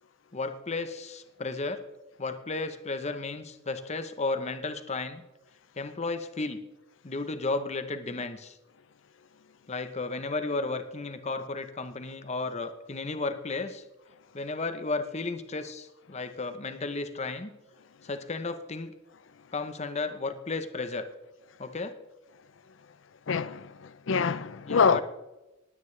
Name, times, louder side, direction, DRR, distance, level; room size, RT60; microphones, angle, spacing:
voice 1, 0.3-1.8 2.2-5.2 5.8-6.6 7.0-8.6 9.7-13.8 14.3-17.5 18.0-18.9 19.5-21.1 21.6-21.9 24.7-25.0, left 3 dB, 35° left, 0.8 m, -33 dB
voice 2, 23.3-25.0, left 6 dB, 65° left, 0.5 m, -25 dB
19.5 x 9.1 x 3.3 m
head